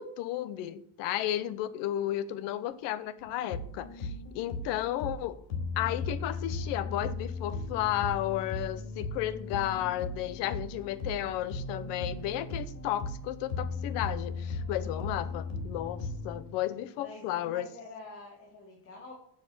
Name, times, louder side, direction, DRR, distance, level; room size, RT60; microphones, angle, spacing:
voice 1, 0.0-5.4 5.8-17.7, left 13 dB, 60° left, 0.9 m, -33 dB
sound 1, 3.2-16.4, left 3 dB, 90° left, 3.4 m, -37 dB
voice 2, 17.0-19.1, left 3 dB, 25° left, 2.4 m, -47 dB
7.4 x 6.9 x 7.9 m
cardioid pair, 165°, 48 cm